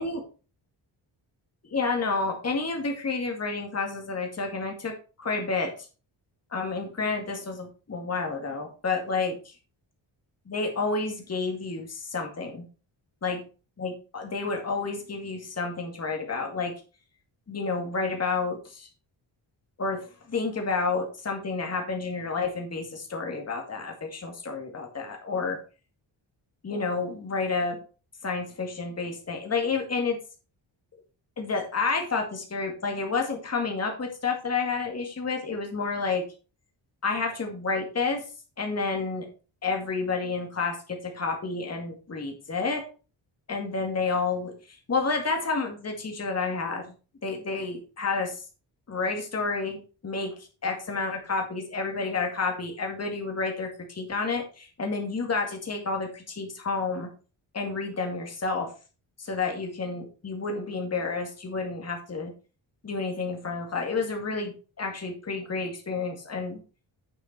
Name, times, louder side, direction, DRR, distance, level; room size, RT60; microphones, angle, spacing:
voice 1, 1.7-5.7 6.5-9.5 10.5-12.7 13.2-13.4 13.8-16.7 17.5-18.9 19.8-25.6 26.6-27.8 28.2-30.2 31.4-36.2 37.0-38.2 38.6-39.3 39.6-42.8 43.5-46.9 47.2-48.4 48.9-50.3 50.6-57.1 57.5-58.7 59.2-62.3 62.8-66.6, left 4 dB, 35° left, 3 dB, 2.1 m, -30 dB
9.0 x 6.3 x 4.4 m, 0.35 s
wide cardioid pair, 150°, 46 cm